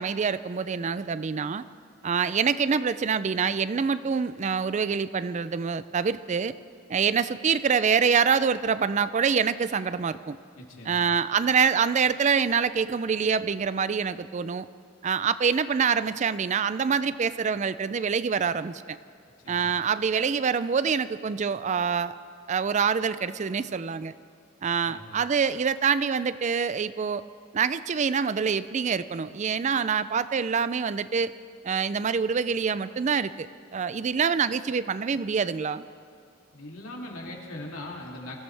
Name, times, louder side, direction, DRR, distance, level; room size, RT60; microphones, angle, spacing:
voice 1, 0.0-1.6 2.0-6.5 6.9-10.4 10.9-14.7 15.0-19.0 19.5-22.2 22.5-24.1 24.6-27.2 27.5-31.3 31.6-33.5 33.7-35.9, right 6 dB, 35° right, 14 dB, 0.4 m, -25 dB
voice 2, 10.6-11.0 19.4-19.7 24.8-25.2 36.5-38.4, left 1 dB, 90° left, -2 dB, 2.8 m, -40 dB
24.5 x 15.5 x 3.4 m, 2.3 s
head